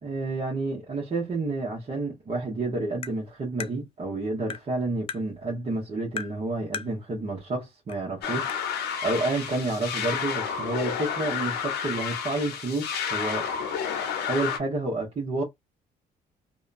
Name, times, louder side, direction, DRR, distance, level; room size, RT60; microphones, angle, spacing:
voice 1, 0.0-13.5 14.3-15.4, right 2 dB, 35° right, 1.0 m, -30 dB
Tap, 3.0-3.2 3.6-3.7 4.5-4.7 5.1-5.2 6.2-6.4 6.7-6.9 7.9-8.0 8.5-8.6, left 6 dB, 35° left, 0.4 m, -35 dB
sound 1, 8.2-14.6, left 7 dB, 80° left, 0.8 m, -30 dB
2.7 x 2.2 x 2.5 m
cardioid pair, 110°, 17 cm